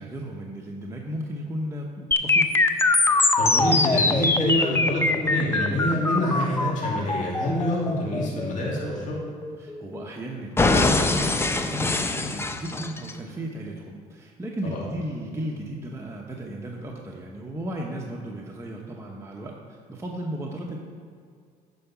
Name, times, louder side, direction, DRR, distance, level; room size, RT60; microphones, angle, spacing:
voice 1, 0.0-2.5 9.6-20.8, right 1 dB, 15° right, -1 dB, 0.9 m, -35 dB
sound 1, 2.1-10.1 10.6-13.1, left 3 dB, 15° left, 0.5 m, -23 dB
voice 2, 3.4-9.2 14.6-14.8, equal, 50° left, -5 dB, 2.1 m, -26 dB
9.4 x 4.7 x 5.9 m, 2.2 s
cardioid pair, 110°, 17 cm